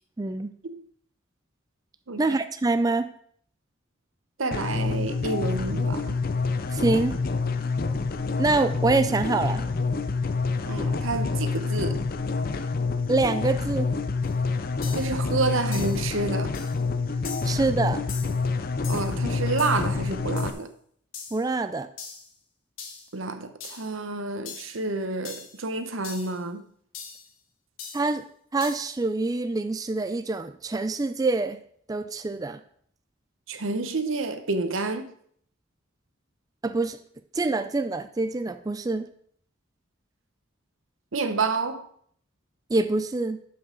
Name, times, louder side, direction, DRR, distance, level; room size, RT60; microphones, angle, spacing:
voice 1, 0.2-0.5 2.2-3.1 6.7-7.2 8.4-9.6 13.1-13.9 17.4-18.0 21.3-21.9 27.9-28.2 28.5-31.6 31.9-32.6 36.6-37.0 37.3-39.1 42.7-43.4, right 3 dB, 20° right, 0.3 m, -25 dB
voice 2, 4.4-6.2 10.7-12.0 14.9-16.6 18.9-20.7 23.1-26.6 33.5-35.1 41.1-41.9, right 3 dB, 90° right, 0.9 m, -29 dB
sound 1, 4.5-20.5, left 4 dB, 45° left, 0.5 m, -27 dB
sound 2, 14.2-14.3 14.8-15.2 15.7-16.1 16.5-16.8 17.2-17.6 18.1-18.4 18.8-19.2 19.6-19.9 20.4-20.6 21.1-21.5 22.0-22.3 22.8-23.1 23.6-23.9 24.5-24.8 25.3-25.6 26.0-26.4 26.9-27.3 27.8-28.1 28.6-28.9, left 6 dB, 85° left, 1.4 m, -41 dB
12.0 x 5.6 x 3.8 m
head